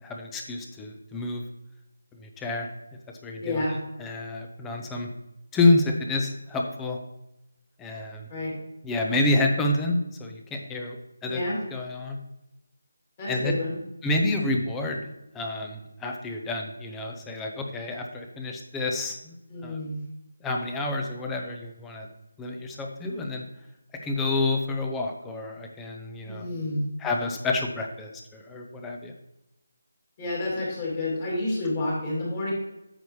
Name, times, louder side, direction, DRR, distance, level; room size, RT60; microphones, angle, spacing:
voice 1, 0.0-1.4 2.2-2.7 3.2-3.6 4.0-5.1 5.5-7.0 7.8-8.3 8.8-11.0 11.2-11.4 11.7-12.2 13.3-13.5 14.0-15.0 15.3-19.3 19.6-19.8 20.4-22.1 22.4-23.4 24.0-26.5 27.0-29.1, left 2 dB, 5° left, 2 dB, 0.6 m, -28 dB
voice 2, 3.4-3.8 8.3-8.6 11.3-11.6 13.2-13.8 19.5-20.0 26.3-26.9 30.2-32.5, left 2 dB, 25° left, -5 dB, 2.7 m, -29 dB
8.9 x 6.9 x 3.2 m, 0.90 s
figure-of-eight pair, 170°, 0 cm